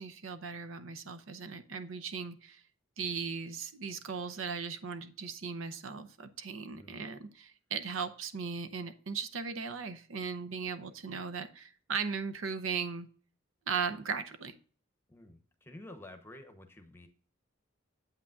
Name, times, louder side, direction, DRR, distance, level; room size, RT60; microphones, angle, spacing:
voice 1, 0.0-2.6 3.0-13.1 13.7-14.5, right 5 dB, 80° right, 10 dB, 0.7 m, -37 dB
voice 2, 6.7-7.0 15.1-17.1, left 1 dB, 10° left, 6 dB, 0.9 m, -51 dB
8.3 x 8.2 x 2.4 m, 0.43 s
head